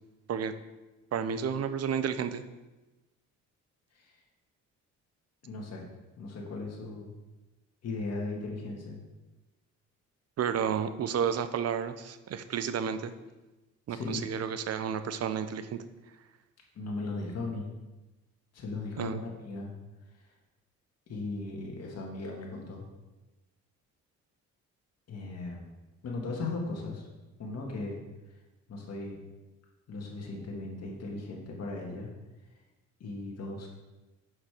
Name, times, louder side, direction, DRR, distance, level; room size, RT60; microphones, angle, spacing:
voice 1, 1.1-2.4 10.4-13.1 13.9-15.8 19.0-19.2, right 7 dB, 55° right, 11 dB, 0.7 m, -31 dB
voice 2, 5.4-5.8 6.2-7.1 7.8-9.0 13.9-14.3 16.8-17.7 18.5-19.7 21.1-22.9 25.1-25.6 26.0-27.1 27.4-28.0 28.7-29.2 29.9-32.1 33.0-33.8, left 3 dB, 55° left, -1 dB, 1.9 m, -37 dB
6.4 x 5.9 x 4.9 m, 1.1 s
cardioid pair, 90°, 30 cm